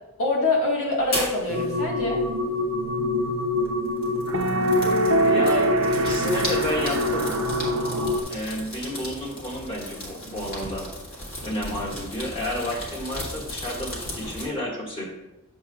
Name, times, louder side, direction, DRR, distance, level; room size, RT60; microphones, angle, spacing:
voice 1, 0.2-2.2, left 2 dB, 85° left, -3 dB, 1.7 m, -24 dB
sound 1, 1.0-14.4, equal, 45° left, 2.0 m, -36 dB
sound 2, 1.5-8.2, equal, 75° right, 0.7 m, -24 dB
voice 2, 5.2-7.4 8.3-10.9 11.4-15.0, left 1 dB, 25° left, -4 dB, 1.8 m, -31 dB
7.8 x 7.3 x 2.4 m, 0.93 s
head